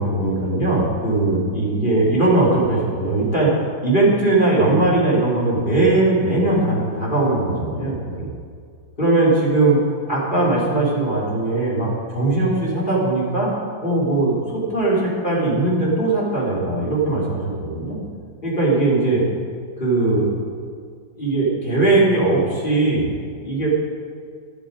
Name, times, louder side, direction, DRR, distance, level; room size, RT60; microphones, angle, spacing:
voice 1, 0.0-3.5 3.8-8.3 9.0-9.8 10.1-13.5 13.8-18.0 18.4-19.2 19.8-20.3 21.2-23.1 23.4-23.7, right 2 dB, 25° left, -5 dB, 3.4 m, -19 dB
12.0 x 11.5 x 5.1 m, 2.2 s
omnidirectional pair, 2.2 m